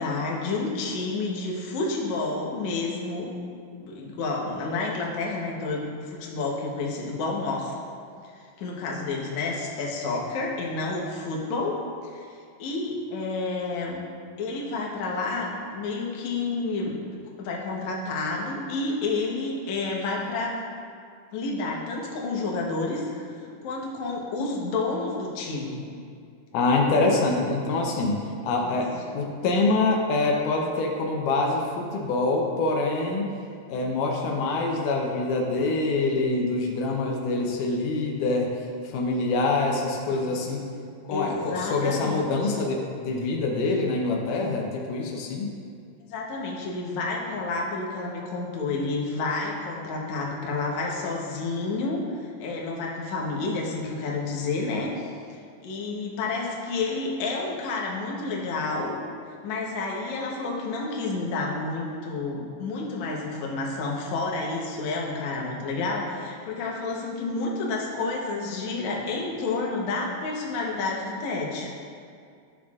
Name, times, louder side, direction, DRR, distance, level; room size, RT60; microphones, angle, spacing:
voice 1, 0.0-3.3 3.8-7.8 8.6-11.8 12.0-12.3 12.6-14.0 14.4-17.0 17.4-20.6 21.3-25.8 26.9-27.3 28.6-28.8 40.1-40.4 41.1-42.5 46.1-52.0 52.4-55.1 55.6-58.9 59.4-71.7, left 3 dB, 70° left, -2 dB, 2.2 m, -30 dB
voice 2, 26.5-28.2 28.4-33.3 33.7-38.5 38.8-40.6 41.1-45.5, left 3 dB, 85° left, 0 dB, 2.3 m, -25 dB
12.0 x 6.3 x 2.4 m, 2.3 s
omnidirectional pair, 3.6 m